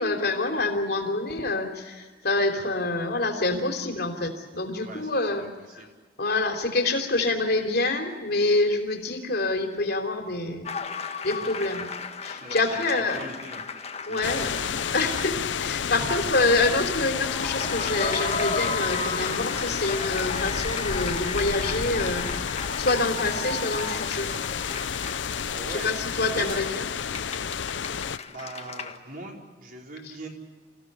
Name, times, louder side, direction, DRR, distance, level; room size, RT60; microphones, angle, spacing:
voice 1, 0.0-5.4 5.7-5.8 6.2-10.7 11.2-11.9 12.2-13.3 14.1-14.5 14.9-24.3 25.7-26.9, left 2 dB, 60° left, 4 dB, 3.4 m, -26 dB
voice 2, 4.8-5.9 12.4-13.6 14.0-14.6 15.9-16.3 25.5-26.6 28.3-30.3, right 1 dB, 50° right, 0 dB, 4.5 m, -41 dB
Various Theatre Applause, 10.6-16.1 17.1-25.7 26.8-29.0, left 4 dB, 35° left, 1.6 m, -35 dB
sound 1, 14.2-28.2, left 7 dB, 90° left, 0.6 m, -30 dB
27.5 x 16.0 x 8.1 m, 1.4 s
head